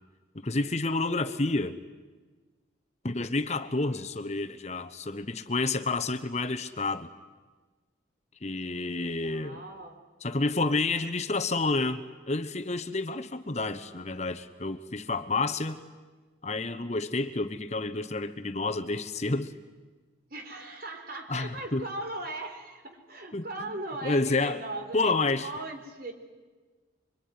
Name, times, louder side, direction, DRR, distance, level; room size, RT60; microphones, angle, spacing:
voice 1, 0.3-1.8 3.0-7.1 8.4-9.6 10.2-15.8 16.4-19.5 21.3-21.9 23.3-23.7 24.0-24.6 24.9-25.5, left 3 dB, 35° left, 9 dB, 1.1 m, -29 dB
voice 2, 9.0-10.0 20.3-25.1 25.4-26.1, right 2 dB, 50° right, 4 dB, 4.2 m, -39 dB
25.0 x 25.0 x 9.6 m, 1.3 s
head